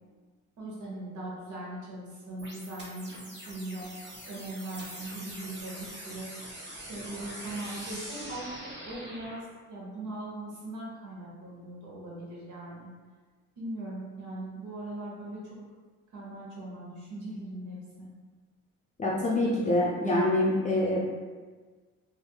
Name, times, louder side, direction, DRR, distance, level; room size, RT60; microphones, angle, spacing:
voice 1, 0.6-3.9 4.3-12.9 13.6-15.4 16.1-18.1, right 1 dB, 80° right, -5 dB, 0.9 m, -40 dB
sound 1, 2.4-9.4, right 1 dB, 35° right, 1.1 m, -43 dB
voice 2, 19.0-21.0, left 1 dB, 25° left, -5 dB, 0.4 m, -25 dB
4.0 x 2.5 x 2.2 m, 1.4 s
cardioid pair, 90°, 30 cm